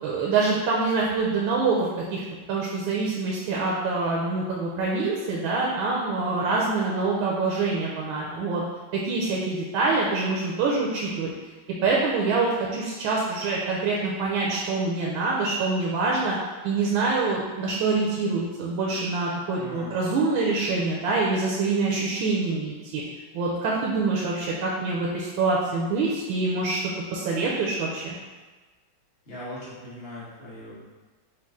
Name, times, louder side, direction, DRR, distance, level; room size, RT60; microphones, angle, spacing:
voice 1, 0.0-2.2 2.5-8.6 8.9-11.3 11.8-16.3 16.6-23.0 23.3-26.8 27.1-28.1, right 3 dB, 85° right, -3 dB, 1.4 m, -25 dB
voice 2, 19.6-20.0 29.2-30.8, left 1 dB, 35° left, -8 dB, 1.3 m, -40 dB
5.2 x 2.5 x 3.6 m, 1.3 s
omnidirectional pair, 2.1 m